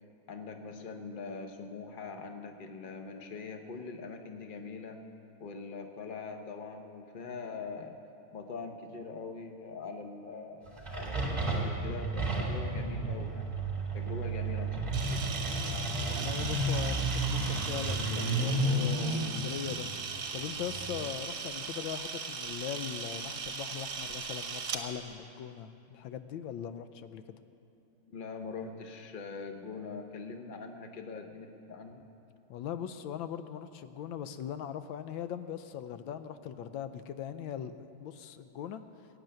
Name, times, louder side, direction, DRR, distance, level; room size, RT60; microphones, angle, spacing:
voice 1, 0.3-5.0 5.4-8.0 8.3-13.5 13.9-15.2 28.0-32.0, left 4 dB, 55° left, 5 dB, 0.5 m, -42 dB
sound 1, 10.7-21.0, right 2 dB, 20° right, 2.1 m, -32 dB
Camera, 14.9-24.8, right 5 dB, 55° right, 1.6 m, -38 dB
voice 2, 16.0-27.4 32.5-38.8, left 9 dB, 75° left, 11 dB, 1.4 m, -40 dB
16.5 x 9.2 x 7.7 m, 2.8 s
omnidirectional pair, 2.2 m